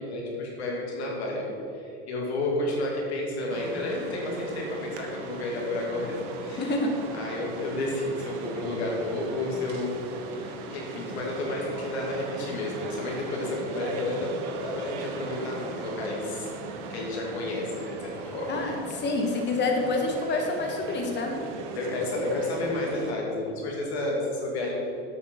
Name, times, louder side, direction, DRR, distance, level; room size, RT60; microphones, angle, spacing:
voice 1, 0.0-6.7 7.2-10.0 10.3-16.5 16.9-18.6 21.7-24.9, left 2 dB, 90° left, -2 dB, 2.5 m, -31 dB
sound 1, 3.5-23.1, right 3 dB, 60° right, 1.4 m, -39 dB
voice 2, 6.6-7.0 18.5-21.4, left 2 dB, 35° left, 2 dB, 1.4 m, -27 dB
8.2 x 6.8 x 6.4 m, 2.7 s
hypercardioid pair, 95°, 32 cm